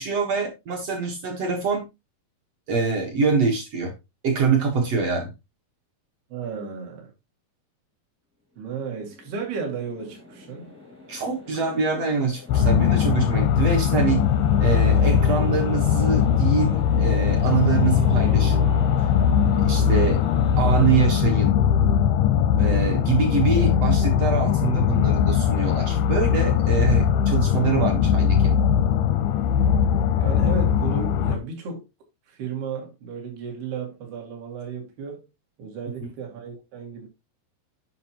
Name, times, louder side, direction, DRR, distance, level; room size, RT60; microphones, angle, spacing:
voice 1, 0.0-1.8 2.7-3.9 4.2-5.3 11.1-14.2 14.6-18.7 19.7-20.2 20.6-21.6 22.6-28.6, right 5 dB, 60° right, 1.7 m, -24 dB
voice 2, 6.3-7.1 8.6-10.7 19.6-20.1 22.6-23.0 30.2-31.9 32.3-35.2 35.6-37.1, right 5 dB, 80° right, 4.1 m, -34 dB
sound 1, 8.7-21.1, left 1 dB, 10° right, 0.7 m, -42 dB
sound 2, 12.5-31.4, left 8 dB, 85° left, 2.5 m, -20 dB
9.2 x 5.7 x 2.9 m
omnidirectional pair, 4.5 m